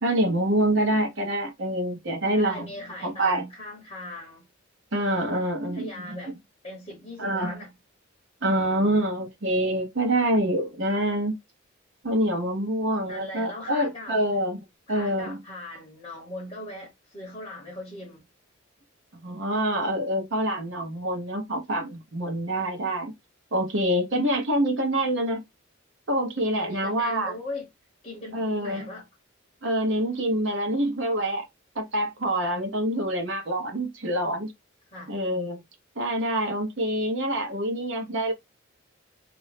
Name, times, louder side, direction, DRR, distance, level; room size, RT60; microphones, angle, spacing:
voice 1, 0.0-2.7 3.0-3.4 4.9-6.3 7.2-7.6 8.4-11.3 12.0-14.6 14.9-15.4 19.1-23.1 23.5-25.4 26.1-27.3 28.3-28.9 29.6-31.4 31.8-34.5 35.1-35.6 36.0-38.3, right 1 dB, 60° right, 0.8 m, -26 dB
voice 2, 2.3-4.4 5.7-6.4 6.6-7.7 13.1-14.2 14.9-18.2 26.5-27.7 28.0-29.1 34.9-35.1, left 1 dB, 30° left, 0.8 m, -39 dB
2.5 x 2.0 x 3.2 m
head